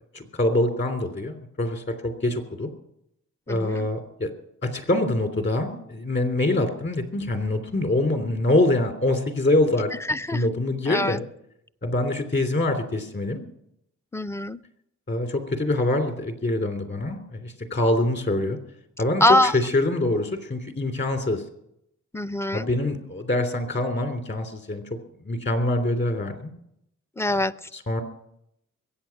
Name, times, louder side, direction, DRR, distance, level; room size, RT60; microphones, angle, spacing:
voice 1, 0.1-2.7 3.5-4.3 4.6-9.9 10.3-11.2 11.8-13.4 15.1-18.6 19.0-21.4 22.5-24.8 25.2-26.5 27.7-28.0, left 1 dB, 35° left, 6 dB, 3.1 m, -25 dB
voice 2, 3.5-3.9 10.1-10.4 10.9-11.2 14.1-14.6 19.2-19.5 22.1-22.7 27.2-27.5, left 1 dB, 10° left, 13 dB, 0.5 m, -23 dB
22.5 x 8.8 x 5.9 m, 0.77 s
cardioid pair, 85°, 31 cm